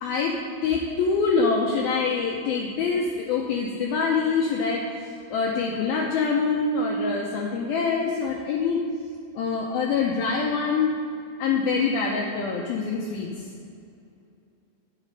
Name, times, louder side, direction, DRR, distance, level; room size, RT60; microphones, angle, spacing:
voice 1, 0.0-0.4 0.6-8.8 9.4-10.9 11.4-13.3, left 4 dB, 80° left, -1 dB, 2.2 m, -25 dB
11.0 x 8.4 x 5.3 m, 2.5 s
omnidirectional pair, 5.1 m